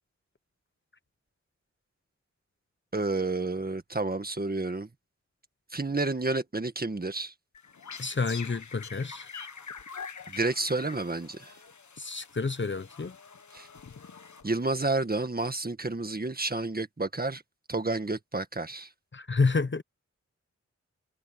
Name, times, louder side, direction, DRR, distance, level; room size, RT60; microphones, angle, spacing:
voice 1, 2.9-4.9 5.7-7.3 10.3-11.5 13.5-13.7 14.4-17.4 17.7-18.9, right 2 dB, 30° right, 1.8 m, -30 dB
sound 1, 7.5-14.9, left 6 dB, 80° left, 1.5 m, -45 dB
voice 2, 8.0-9.3 12.0-13.2 19.1-19.8, left 4 dB, 40° left, 0.9 m, -29 dB
wide cardioid pair, 95°, 29 cm